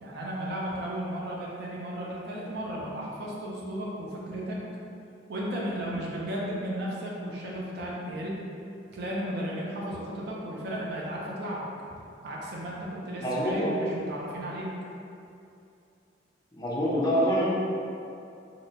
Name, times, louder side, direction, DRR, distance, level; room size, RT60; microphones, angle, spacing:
voice 1, 0.0-4.6 5.3-8.4 8.9-12.0 12.2-14.7, equal, 60° right, -4 dB, 0.5 m, -34 dB
voice 2, 13.2-13.7 16.5-17.5, equal, 20° left, -6 dB, 0.4 m, -26 dB
2.8 x 2.1 x 2.7 m, 2.5 s
head